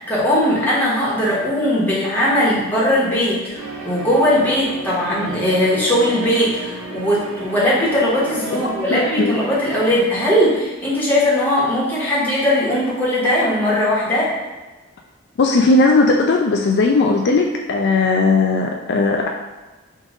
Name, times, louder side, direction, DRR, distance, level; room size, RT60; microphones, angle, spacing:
voice 1, 0.1-14.3, left 1 dB, 10° left, -7 dB, 1.2 m, -19 dB
sound 1, 3.5-10.0, right 2 dB, 85° right, 0.8 m, -33 dB
voice 2, 8.5-9.4 15.4-19.3, left 3 dB, 50° left, 2 dB, 0.3 m, -17 dB
5.2 x 2.5 x 3.7 m, 1.2 s
head